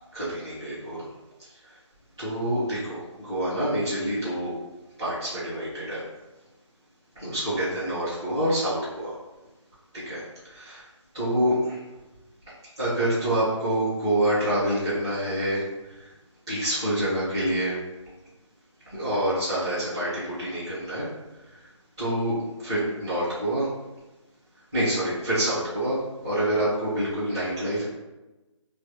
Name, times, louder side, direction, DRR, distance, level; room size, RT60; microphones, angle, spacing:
voice 1, 0.1-1.0 2.2-4.5 5.0-6.0 7.1-9.1 10.0-10.2 10.5-10.8 11.1-11.8 12.8-15.6 16.5-17.8 18.9-21.0 22.0-23.7 24.7-27.8, right 1 dB, 10° right, -21 dB, 0.7 m, -27 dB
3.2 x 2.2 x 3.1 m, 1.0 s
figure-of-eight pair, 180°, 16 cm